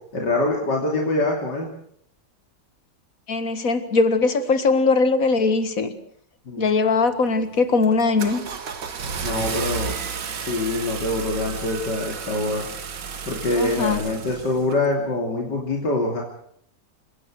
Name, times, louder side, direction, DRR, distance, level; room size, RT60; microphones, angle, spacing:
voice 1, 0.1-1.7 6.5-6.7 9.2-10.0 10.4-12.7 13.3-16.2, left 2 dB, 80° left, 0 dB, 3.5 m, -24 dB
voice 2, 3.3-5.9 6.6-8.4 13.6-14.0, left 4 dB, 50° left, 11 dB, 2.0 m, -20 dB
Car / Engine starting, 7.0-7.4 7.8-14.8, right 5 dB, 90° right, 2.3 m, -32 dB
29.0 x 16.5 x 6.4 m, 0.66 s
omnidirectional pair, 1.9 m